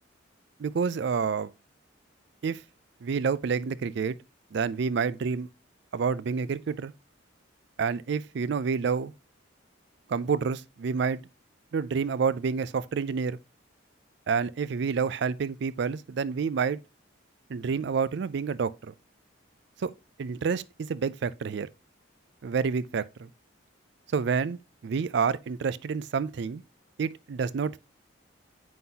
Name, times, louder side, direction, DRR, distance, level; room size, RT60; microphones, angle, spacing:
voice 1, 0.6-1.5 2.4-2.6 3.0-4.2 4.5-5.5 5.9-6.9 7.8-9.1 10.1-11.2 11.7-13.4 14.3-16.8 17.5-18.9 19.8-19.9 20.2-21.7 22.4-23.3 24.1-26.6 27.0-27.8, right 5 dB, 60° right, 0.4 m, -28 dB
9.3 x 3.9 x 2.8 m
head